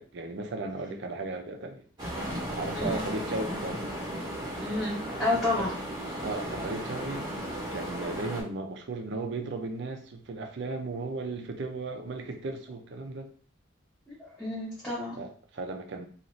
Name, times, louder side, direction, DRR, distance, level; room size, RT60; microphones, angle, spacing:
voice 1, 0.0-1.8 2.2-3.8 5.6-5.7 6.2-7.3 7.7-13.3 15.2-16.1, right 2 dB, 60° right, 4 dB, 0.5 m, -36 dB
sound 1, 2.0-8.4, equal, 20° right, 0.9 m, -35 dB
voice 2, 2.7-3.1 4.6-5.7 14.1-15.2, left 2 dB, 5° left, -10 dB, 0.8 m, -30 dB
2.5 x 2.4 x 3.1 m, 0.44 s
head